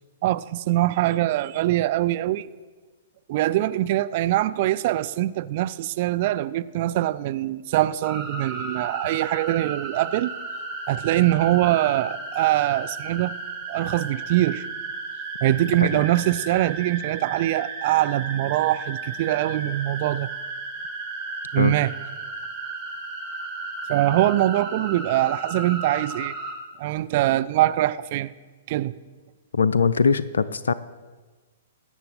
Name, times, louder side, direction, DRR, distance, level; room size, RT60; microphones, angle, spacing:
voice 1, 0.2-2.5 3.3-10.3 10.9-13.3 13.7-14.7 15.4-20.3 21.5-21.9 23.9-26.4 26.8-28.3 28.7-28.9, right 15 dB, 40° right, 15 dB, 0.4 m, -23 dB
hi-strings, 8.0-26.5, right 3 dB, 25° right, 2.7 m, -34 dB
voice 2, 29.5-30.7, left 5 dB, 65° left, 14 dB, 0.4 m, -21 dB
20.0 x 9.1 x 3.9 m, 1.3 s
figure-of-eight pair, 110°, 0 cm